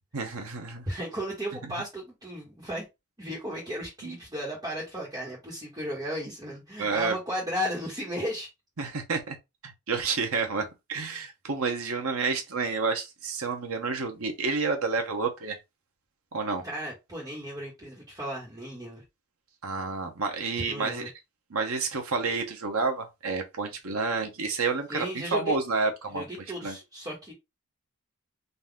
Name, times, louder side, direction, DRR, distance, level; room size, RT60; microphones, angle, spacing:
voice 1, 0.1-0.9 4.0-4.2 6.8-7.2 8.8-9.4 9.6-15.6 16.3-16.6 19.6-21.0 21.5-26.2 26.6-26.8, right 4 dB, 75° right, 1.1 m, -29 dB
voice 2, 0.9-2.9 3.2-8.5 16.6-19.0 20.5-21.1 24.9-25.6 26.1-27.3, equal, 20° right, 1.6 m, -35 dB
4.1 x 2.8 x 3.5 m
head